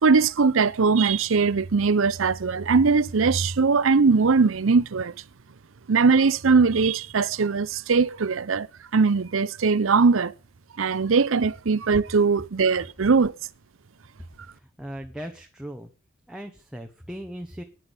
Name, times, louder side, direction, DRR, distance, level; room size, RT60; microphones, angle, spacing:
voice 1, 0.0-5.1 5.9-8.7 8.9-10.3 10.8-13.3, right 4 dB, 75° right, 0.6 m, -20 dB
voice 2, 14.5-15.9 16.3-17.6, equal, 5° right, 1.1 m, -38 dB
10.0 x 9.7 x 8.1 m
head